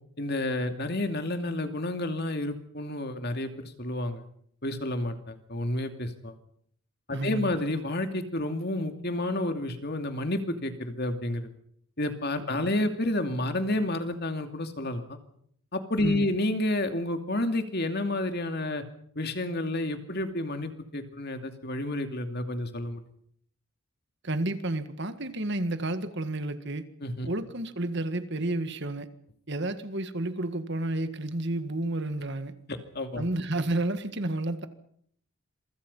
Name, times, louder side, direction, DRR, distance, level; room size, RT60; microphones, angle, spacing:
voice 1, 0.2-4.2 4.6-6.3 7.1-11.5 12.0-15.2 15.7-18.8 19.2-23.0 27.0-27.3 32.9-33.2, left 1 dB, 45° left, 2.6 m, -30 dB
voice 2, 7.1-7.5 12.6-12.7 16.0-16.3 24.2-26.9 27.3-29.1 29.5-32.5 33.2-34.7, right 2 dB, 50° right, 1.8 m, -31 dB
27.0 x 24.5 x 5.6 m
head